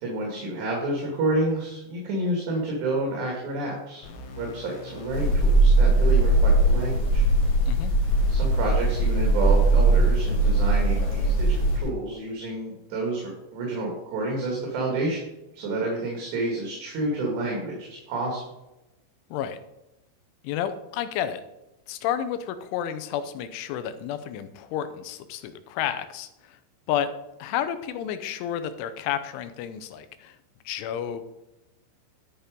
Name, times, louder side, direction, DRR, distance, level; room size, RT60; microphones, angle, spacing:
voice 1, 0.0-7.2 8.3-15.2 15.5-18.4, right 2 dB, 65° right, -1 dB, 4.3 m, -29 dB
sound 1, 4.0-12.0, left 1 dB, 70° left, 3.4 m, -42 dB
sound 2, 5.1-11.8, right 2 dB, 40° left, 3.6 m, -20 dB
voice 2, 20.4-21.4 21.9-26.6 26.9-27.1 27.4-30.4 30.7-31.2, left 10 dB, 85° left, 11 dB, 3.3 m, -31 dB
12.0 x 7.0 x 5.2 m, 0.93 s
omnidirectional pair, 5.4 m